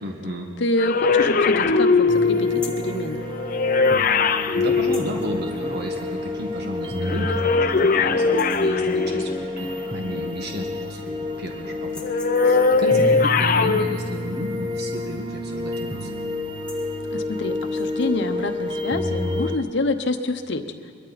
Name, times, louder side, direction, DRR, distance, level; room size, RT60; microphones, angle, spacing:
voice 1, 0.0-0.5 4.5-12.0 12.4-16.2, equal, 55° right, 1 dB, 1.6 m, -33 dB
voice 2, 0.6-3.2 17.1-20.7, left 2 dB, 60° left, 6 dB, 0.9 m, -26 dB
sound 1, 0.8-5.8 7.0-9.6 12.0-13.8, left 4 dB, 45° left, 0.5 m, -20 dB
sound 2, 2.1-19.6, left 2 dB, 25° right, 0.8 m, -29 dB
sound 3, 2.5-2.9 4.8-5.3 6.7-6.8 7.2-7.3 7.7-8.0 8.2-8.8 10.1-10.2 10.5-11.2 11.8-12.7 15.1-15.4 15.7-15.9 16.4-17.0 17.6-18.1, left 3 dB, 5° left, 1.3 m, -43 dB
22.5 x 13.5 x 4.1 m, 2.4 s
head